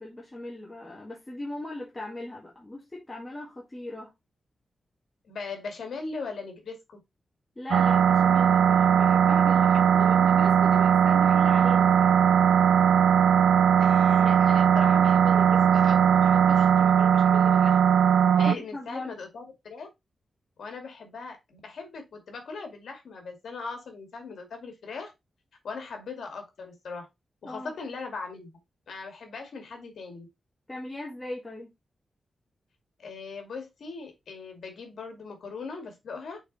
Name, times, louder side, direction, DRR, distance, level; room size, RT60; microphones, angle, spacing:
voice 1, 0.0-4.1 7.6-12.2 18.3-19.2 27.4-27.7 30.7-31.7, left 1 dB, 15° left, 1.9 m, -39 dB
voice 2, 5.3-7.0 9.9-10.1 13.8-17.8 18.4-19.9 20.6-25.1 25.6-27.1 27.4-28.5 28.9-30.3 33.0-36.4, left 4 dB, 70° left, 2.2 m, -39 dB
sound 1, 7.7-18.6, right 8 dB, 80° right, 0.4 m, -19 dB
6.4 x 4.5 x 4.1 m
wide cardioid pair, 140°, 0 cm